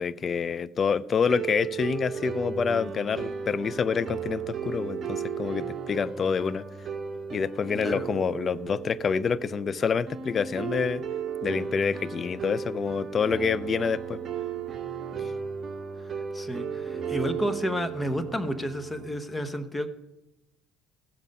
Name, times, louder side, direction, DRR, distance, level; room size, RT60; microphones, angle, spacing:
voice 1, 0.0-6.7 7.3-11.0 11.4-14.2, left 6 dB, 35° left, 19 dB, 0.4 m, -27 dB
sound 1, 1.2-19.3, right 6 dB, 40° right, 1.3 m, -35 dB
voice 2, 7.7-8.1 16.3-19.9, equal, 15° left, 10 dB, 1.0 m, -31 dB
15.0 x 7.4 x 5.4 m, 0.97 s
cardioid pair, 110°, 0 cm